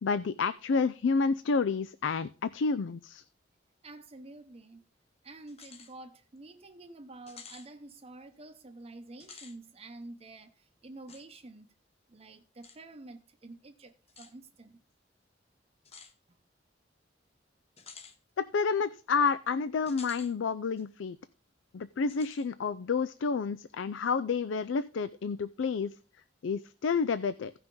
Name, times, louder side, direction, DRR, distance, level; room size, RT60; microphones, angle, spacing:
voice 1, 0.0-3.2 18.4-21.2 21.7-25.9 26.4-27.5, left 5 dB, 90° left, 0.4 m, -29 dB
voice 2, 3.8-4.8 5.2-11.7 12.1-14.8 16.3-16.4, right 2 dB, 35° right, 0.7 m, -49 dB
sound 1, 5.5-5.9 6.4-6.5 7.3-7.7 9.1-9.6 11.1-11.2 12.6-12.8 14.1-14.3 15.9-16.1 17.8-18.2 19.9-20.3 20.8-20.9 22.1-22.5, left 5 dB, 35° left, 0.9 m, -50 dB
16.0 x 5.9 x 3.8 m
head